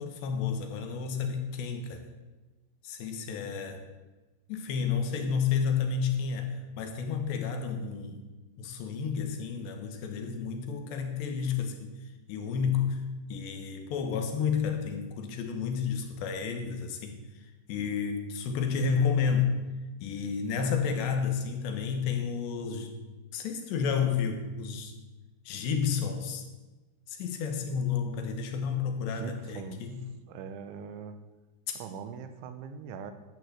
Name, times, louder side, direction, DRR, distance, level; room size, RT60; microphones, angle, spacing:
voice 1, 0.0-2.0 2.8-3.8 4.5-8.3 8.6-11.9 12.3-13.0 13.3-17.2 17.7-19.5 20.0-23.0 23.3-24.9 25.5-26.4 27.1-30.0 31.7-31.8, left 6 dB, 70° left, 6 dB, 3.4 m, -31 dB
voice 2, 29.1-29.8 30.3-31.2 31.8-33.1, right 6 dB, 85° right, 9 dB, 3.4 m, -41 dB
11.5 x 9.6 x 8.0 m, 1.2 s
omnidirectional pair, 5.4 m